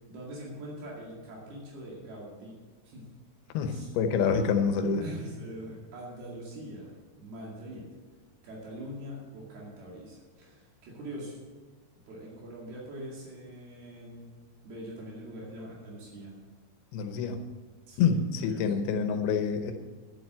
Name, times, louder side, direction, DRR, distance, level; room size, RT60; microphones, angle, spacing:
voice 1, 0.0-2.5 2.8-3.1 3.7-3.9 5.0-6.9 7.2-7.9 8.4-11.4 12.1-14.3 14.6-16.3 17.9-18.2 18.5-18.7, right 1 dB, 75° right, -4 dB, 4.3 m, -43 dB
voice 2, 3.5-5.0 16.9-17.4 18.0-19.7, left 6 dB, 80° left, 7 dB, 2.9 m, -27 dB
11.0 x 7.9 x 7.5 m, 1.5 s
omnidirectional pair, 4.5 m